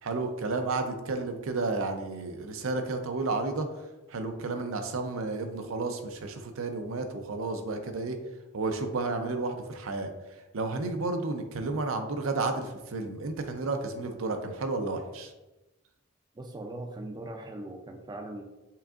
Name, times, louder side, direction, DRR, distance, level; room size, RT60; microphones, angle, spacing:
voice 1, 0.0-3.7 4.1-8.2 8.5-10.1 10.5-15.3, right 3 dB, 85° right, 6 dB, 0.6 m, -32 dB
voice 2, 16.3-18.4, right 1 dB, 20° right, 3 dB, 0.4 m, -40 dB
5.7 x 3.7 x 2.4 m, 1.0 s
head